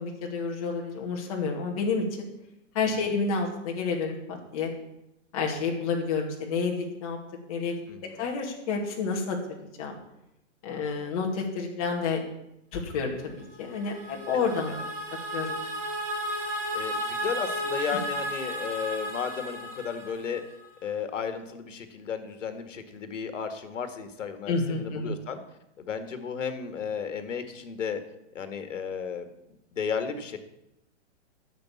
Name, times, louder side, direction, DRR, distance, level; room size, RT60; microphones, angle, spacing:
voice 1, 0.0-2.3 2.7-4.7 5.3-7.2 7.5-7.8 8.2-9.9 10.6-12.2 12.7-14.7 15.3-15.6 24.5-25.1, left 4 dB, 30° left, 0 dB, 2.2 m, -29 dB
voice 2, 7.9-8.2 14.7-14.9 16.7-20.4 20.8-25.4 25.8-28.0 28.3-30.4, left 6 dB, 80° left, 9 dB, 2.0 m, -34 dB
sound 1, 13.5-20.6, equal, 55° right, 4.4 m, -34 dB
10.5 x 7.0 x 8.5 m, 0.85 s
hypercardioid pair, 175°, 37 cm